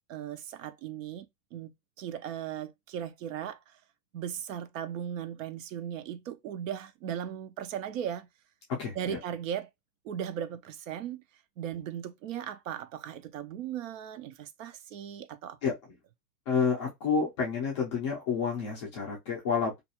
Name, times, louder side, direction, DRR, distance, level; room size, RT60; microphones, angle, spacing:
voice 1, 0.1-1.3 1.5-3.8 4.1-8.3 9.0-9.7 10.0-11.2 11.6-15.6, right 9 dB, 55° right, 0.5 m, -37 dB
voice 2, 8.7-9.2 15.6-15.7 16.5-19.8, left 5 dB, 20° left, 0.3 m, -29 dB
2.4 x 2.2 x 2.8 m
hypercardioid pair, 145°, 46 cm